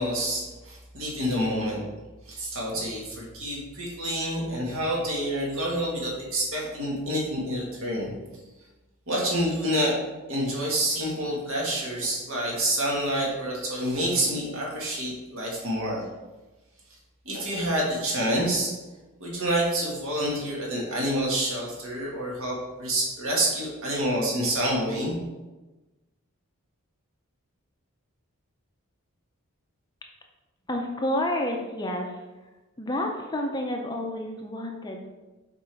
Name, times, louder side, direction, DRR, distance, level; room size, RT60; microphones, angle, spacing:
voice 1, 0.0-1.8 2.3-8.1 9.1-10.0 10.3-16.0 17.3-18.7 19.2-25.2, right 1 dB, 65° right, -3 dB, 1.7 m, -28 dB
voice 2, 30.7-32.2 32.8-35.1, left 1 dB, 20° left, 2 dB, 0.5 m, -29 dB
6.9 x 4.5 x 3.4 m, 1.1 s
head